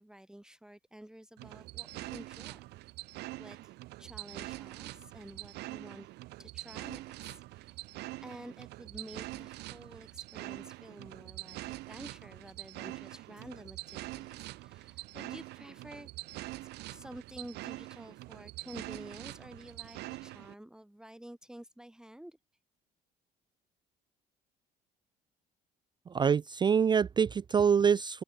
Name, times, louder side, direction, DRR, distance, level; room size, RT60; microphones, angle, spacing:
voice 1, 0.0-3.7 4.0-6.1 6.4-7.9 8.2-16.1 16.6-22.4, right 1 dB, 5° right, 2.6 m, -50 dB
sound 1, 1.4-20.5, right 19 dB, 80° right, 0.5 m, -44 dB
voice 2, 26.1-28.2, right 7 dB, 25° right, 0.4 m, -25 dB
cardioid pair, 110°, 17 cm